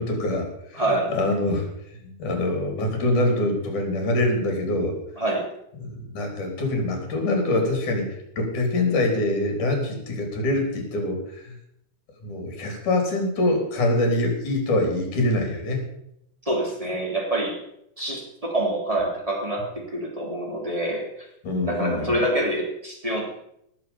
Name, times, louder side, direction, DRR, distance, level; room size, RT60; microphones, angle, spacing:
voice 1, 0.0-0.8 1.1-1.7 2.0-5.0 6.1-11.5 12.2-15.9 21.4-22.2, left 2 dB, 70° left, 3 dB, 4.8 m, -24 dB
voice 2, 0.7-1.1 5.2-5.5 16.4-17.6 18.0-21.1 21.6-23.2, right 1 dB, 10° right, -1 dB, 3.3 m, -26 dB
18.5 x 7.1 x 7.2 m, 0.77 s
omnidirectional pair, 3.6 m